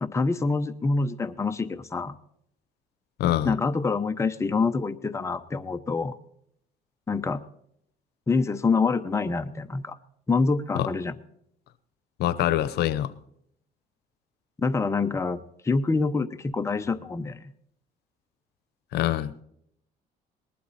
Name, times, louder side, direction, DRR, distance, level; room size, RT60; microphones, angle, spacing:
voice 1, 0.0-2.1 3.4-6.1 7.1-7.4 8.3-10.0 10.3-11.1 14.6-15.4 15.6-17.5, left 4 dB, 15° left, 8 dB, 0.8 m, -26 dB
voice 2, 3.2-3.6 10.7-10.9 12.2-13.1 18.9-19.4, left 12 dB, 75° left, 15 dB, 0.8 m, -25 dB
19.5 x 12.0 x 4.2 m, 0.71 s
cardioid pair, 110°, 17 cm